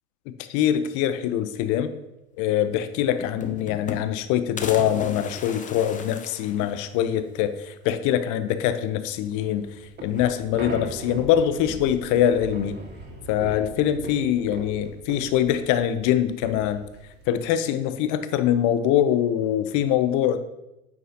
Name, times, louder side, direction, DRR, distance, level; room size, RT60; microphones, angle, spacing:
voice 1, 0.5-1.9 2.4-9.7 10.0-12.8 13.3-16.8 17.3-20.4, left 10 dB, 45° left, 11 dB, 0.9 m, -23 dB
sound 1, 2.6-2.7 2.9-4.2 4.6-7.2 7.6-7.7 7.9-8.0 9.2-9.7 10.0-10.8 11.8-12.4, left 5 dB, 20° left, 0.8 m, -38 dB
sound 2, 9.3-17.5, right 3 dB, 25° right, 2.0 m, -39 dB
9.1 x 8.7 x 2.9 m, 0.92 s
hypercardioid pair, 90°, 42 cm